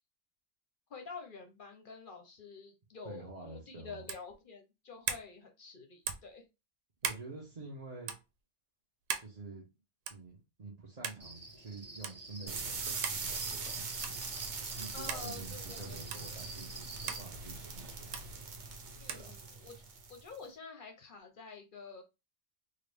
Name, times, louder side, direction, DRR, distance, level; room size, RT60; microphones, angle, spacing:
voice 1, 0.9-6.4 14.9-16.4 19.0-19.8 20.1-22.0, left 5 dB, 55° left, 0.7 m, -49 dB
voice 2, 3.0-4.1 7.0-8.1 9.2-9.7 10.1-14.1 14.8-18.3 19.1-19.3, right 3 dB, 35° right, 0.7 m, -48 dB
sound 1, 4.0-4.3 5.0-5.3 6.0-6.3 7.0-7.3 8.0-8.2 9.1-9.3 10.1-10.3 11.0-11.2 12.0-12.2 13.0-13.2 14.0-14.2 15.1-15.2 16.1-16.2 17.1-17.2 18.1-18.3 19.1-19.3, right 8 dB, 90° right, 0.9 m, -37 dB
Cricket, 11.2-17.2, right 3 dB, 15° right, 0.9 m, -48 dB
sound 2, 12.5-20.4, right 4 dB, 65° right, 1.0 m, -41 dB
3.8 x 2.0 x 3.3 m
omnidirectional pair, 1.3 m